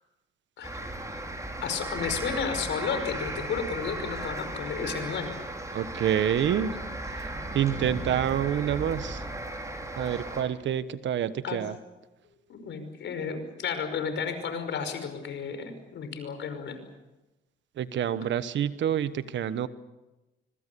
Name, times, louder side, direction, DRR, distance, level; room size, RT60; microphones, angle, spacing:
voice 1, 0.6-1.0 1.6-5.3 11.4-11.6 12.5-16.8, left 6 dB, 65° left, 8 dB, 5.4 m, -32 dB
sound 1, 0.6-10.4, right 1 dB, 15° right, 5.4 m, -36 dB
voice 2, 5.7-6.8 7.1-7.3 7.5-9.2 10.0-11.7 17.8-19.7, right 10 dB, 70° right, 14 dB, 1.3 m, -27 dB
25.5 x 24.0 x 7.0 m, 1.0 s
cardioid pair, 90°, 20 cm